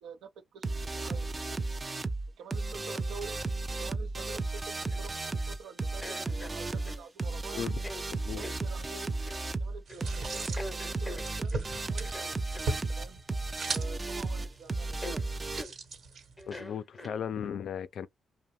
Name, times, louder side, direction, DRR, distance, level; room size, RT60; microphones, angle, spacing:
voice 1, 0.0-1.8 2.4-3.4 3.8-7.6 8.3-9.1 9.6-12.3 13.0-13.2 13.7-15.1, right 5 dB, 85° right, 0.5 m, -48 dB
sound 1, 0.6-15.6, right 3 dB, 25° right, 0.4 m, -34 dB
sound 2, 4.8-5.4 6.0-7.1 7.8-8.0 8.4-8.6 9.3-9.5 9.9-10.1 10.6-11.7 12.0-12.7 13.7-14.2 14.4-14.5 15.0-15.2 15.6-15.7 16.4-17.5, left 1 dB, 15° left, 0.6 m, -44 dB
voice 2, 8.1-8.4 16.5-18.1, left 8 dB, 70° left, 0.3 m, -36 dB
sound 3, 9.9-16.6, right 3 dB, 65° right, 1.1 m, -40 dB
2.6 x 2.1 x 3.0 m
cardioid pair, 90°, 0 cm